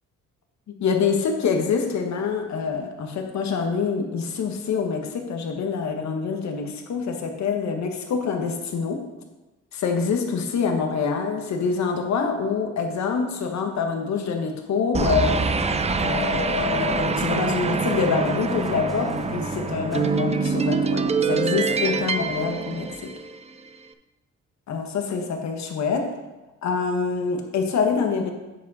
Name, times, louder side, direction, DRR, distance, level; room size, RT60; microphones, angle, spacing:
voice 1, 0.7-9.0 9.7-15.6 15.9-23.1 24.7-26.1 26.6-28.3, left 5 dB, 65° left, 4 dB, 1.3 m, -26 dB
sound 1, 14.9-23.5, right 4 dB, 20° right, 0.5 m, -25 dB
sound 2, 15.0-20.4, left 1 dB, ahead, 1.5 m, -35 dB
9.2 x 5.2 x 4.2 m, 1.1 s
cardioid pair, 90°, 30 cm